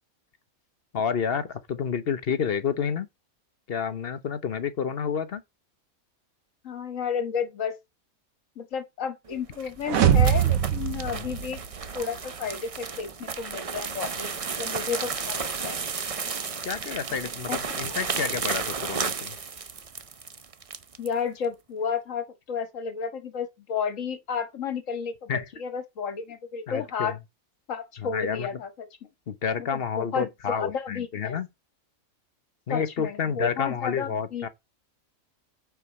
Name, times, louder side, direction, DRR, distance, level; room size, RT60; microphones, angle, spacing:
voice 1, 0.9-3.1 3.7-5.4 11.0-11.4 14.2-14.3 16.6-19.4 25.3-25.5 26.7-27.2 28.0-28.5 29.3-31.5 32.7-34.5, left 6 dB, 50° left, 1.0 m, -30 dB
voice 2, 6.6-7.8 8.6-11.6 11.9-14.3 14.6-15.8 17.5-17.8 21.0-25.3 25.6-27.2 27.7-28.9 29.7-31.4 32.7-34.5, left 6 dB, 65° left, 1.9 m, -32 dB
sound 1, 9.4-21.1, right 5 dB, 35° right, 0.6 m, -33 dB
sound 2, 9.9-12.0, right 9 dB, 80° right, 1.4 m, -22 dB
9.0 x 4.7 x 5.2 m
omnidirectional pair, 1.4 m